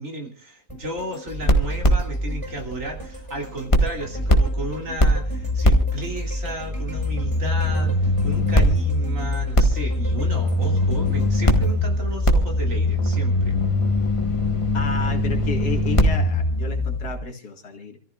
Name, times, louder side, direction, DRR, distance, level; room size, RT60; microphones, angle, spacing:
voice 1, 0.0-13.6, right 1 dB, 55° right, 1 dB, 3.2 m, -34 dB
sound 1, 0.7-12.9 13.3-13.4, equal, 20° right, 4.9 m, -41 dB
sound 2, 1.3-3.4 3.7-17.2, left 1 dB, 20° left, 1.6 m, -21 dB
voice 2, 14.7-18.0, left 3 dB, 80° left, 3 dB, 2.5 m, -32 dB
28.5 x 14.5 x 2.4 m, 0.39 s
omnidirectional pair, 1.6 m